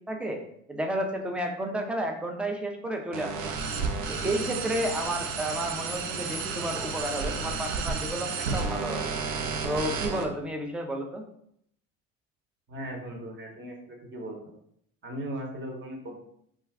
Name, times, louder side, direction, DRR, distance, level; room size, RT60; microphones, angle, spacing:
voice 1, 0.1-0.4 0.7-3.5 4.1-9.1 9.6-11.2, right 1 dB, 5° right, 2 dB, 0.3 m, -32 dB
sound 1, 3.1-10.2, right 4 dB, 65° right, 0.6 m, -32 dB
voice 2, 12.7-14.5 15.0-16.2, right 1 dB, 30° right, 2 dB, 0.9 m, -38 dB
2.3 x 2.2 x 3.4 m, 0.70 s
hypercardioid pair, 75°, 39 cm